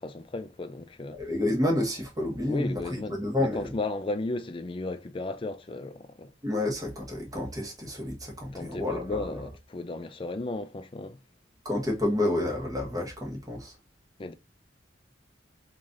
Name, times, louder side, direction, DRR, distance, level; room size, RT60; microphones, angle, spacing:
voice 1, 0.0-1.2 2.5-6.3 8.5-11.2 14.2-14.3, left 2 dB, 30° left, 0.4 m, -35 dB
voice 2, 1.2-2.8 3.1-3.6 6.4-9.3 11.6-13.7, left 1 dB, 20° right, 1.2 m, -29 dB
3.8 x 3.2 x 2.5 m
head